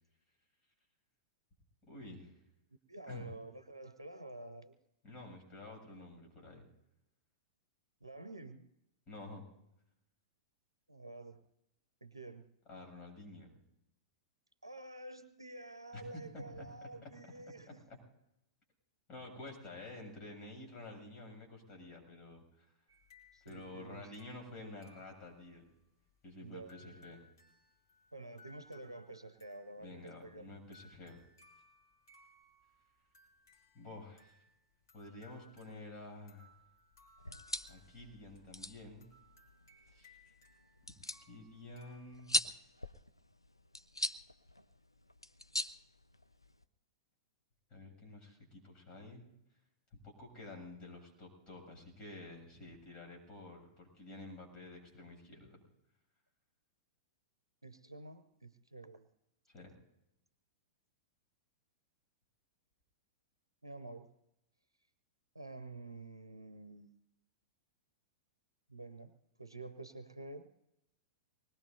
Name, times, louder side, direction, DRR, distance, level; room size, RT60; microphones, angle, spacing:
voice 1, 1.9-2.3 3.1-3.3 5.0-6.6 9.1-9.4 12.7-13.5 15.9-16.0 16.3-16.7 17.0-17.1 17.9-18.0 19.1-22.7 23.5-25.6 26.2-27.2 29.8-31.2 33.7-34.4 34.9-36.5 37.7-39.1 39.9-40.3 41.3-42.4 47.7-49.3 50.0-55.6 59.5-59.7, left 2 dB, 30° left, 1 dB, 7.7 m, -50 dB
voice 2, 2.9-4.8 8.0-8.7 10.9-11.4 12.0-12.5 14.6-17.8 23.3-24.1 26.4-27.1 28.1-30.5 57.6-59.1 63.6-64.1 65.3-66.9 68.7-69.1 69.4-70.5, right 2 dB, 85° right, 10 dB, 0.7 m, -49 dB
sound 1, 22.9-42.3, left 3 dB, 60° left, 4.4 m, -65 dB
sound 2, 37.2-46.6, left 1 dB, 85° left, 0.5 m, -42 dB
25.0 x 20.5 x 2.7 m, 0.86 s
figure-of-eight pair, 100°, 2 cm